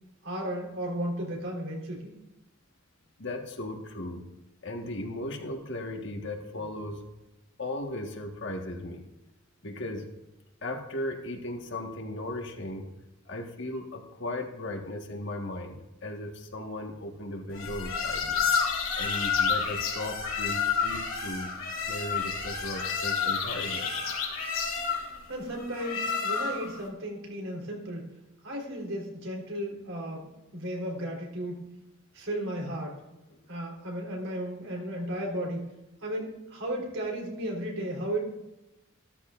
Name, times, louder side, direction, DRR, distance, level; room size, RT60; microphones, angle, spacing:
voice 1, 0.2-2.1 25.3-28.1 28.4-31.7 32.1-33.0 33.5-35.6 36.0-38.2, right 1 dB, 85° right, -1 dB, 4.0 m, -34 dB
voice 2, 3.2-4.2 4.6-7.0 7.6-9.0 9.6-10.0 10.6-12.9 13.2-18.4 18.9-21.5 21.9-24.0 33.3-33.4, left 1 dB, 60° left, 3 dB, 1.6 m, -37 dB
sound 1, 17.5-26.8, left 6 dB, 85° left, 3.1 m, -30 dB
14.0 x 13.0 x 2.6 m, 0.98 s
head